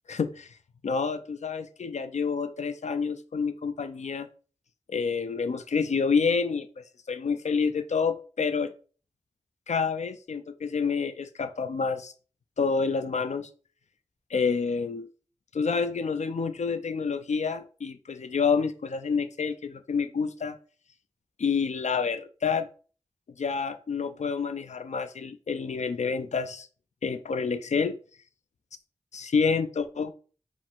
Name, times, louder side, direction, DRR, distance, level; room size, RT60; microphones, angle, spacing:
voice 1, 0.1-0.5 0.8-4.3 4.9-6.7 7.1-8.7 9.7-12.1 12.6-13.5 14.3-15.1 15.5-20.6 21.4-22.7 23.4-26.7 27.0-28.0 29.1-30.1, left 5 dB, 80° left, 0.4 m, -28 dB
4.9 x 2.6 x 3.5 m
wide cardioid pair, 80°, 12 cm